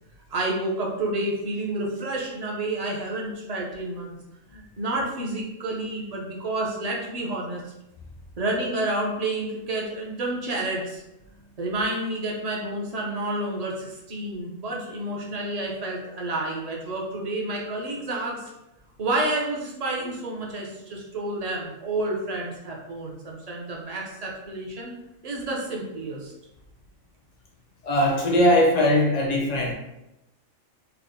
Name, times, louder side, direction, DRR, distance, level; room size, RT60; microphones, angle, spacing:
voice 1, 0.3-4.2 4.5-7.6 8.4-11.0 11.6-18.5 19.0-24.9 25.2-26.3, right 2 dB, 45° right, -2 dB, 0.5 m, -29 dB
voice 2, 27.8-29.7, left 1 dB, 60° left, 0 dB, 0.4 m, -20 dB
3.4 x 2.1 x 3.6 m, 0.90 s
omnidirectional pair, 1.4 m